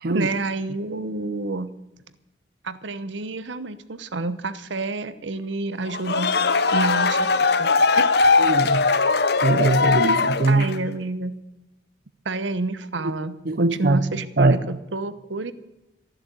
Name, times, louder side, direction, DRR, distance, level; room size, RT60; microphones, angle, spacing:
voice 1, 0.1-1.7 2.6-6.3 6.7-8.1 10.1-10.2 10.5-11.3 12.2-15.5, right 2 dB, 75° right, 13 dB, 0.9 m, -29 dB
sound 1, 5.9-10.9, left 4 dB, 55° left, 0.8 m, -20 dB
voice 2, 8.4-8.9 9.4-10.6 13.5-14.0 14.4-14.6, right 2 dB, 50° right, 11 dB, 0.6 m, -21 dB
13.5 x 11.0 x 8.2 m, 0.98 s
head